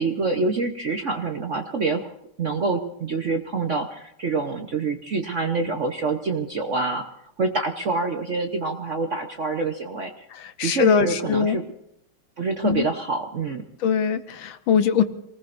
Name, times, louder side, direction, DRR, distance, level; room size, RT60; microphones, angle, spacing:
voice 1, 0.0-2.1 2.4-7.0 7.4-10.2 10.6-11.6 12.4-13.6, right 3 dB, 50° right, 5 dB, 0.9 m, -26 dB
voice 2, 10.3-11.6 12.6-12.9 13.8-15.0, left 6 dB, 70° left, 10 dB, 1.5 m, -22 dB
27.0 x 19.5 x 2.6 m, 0.78 s
omnidirectional pair, 2.4 m